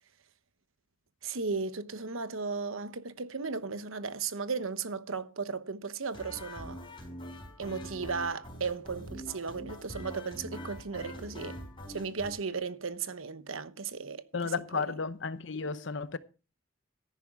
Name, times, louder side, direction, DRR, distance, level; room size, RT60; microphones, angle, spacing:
voice 1, 1.2-6.8 7.6-11.6 11.9-14.8, right 4 dB, 85° right, 1.0 m, -36 dB
sound 1, 6.1-12.3, equal, 25° left, 4.2 m, -44 dB
voice 2, 14.3-16.2, left 4 dB, 65° left, 0.8 m, -33 dB
14.0 x 10.5 x 3.7 m
head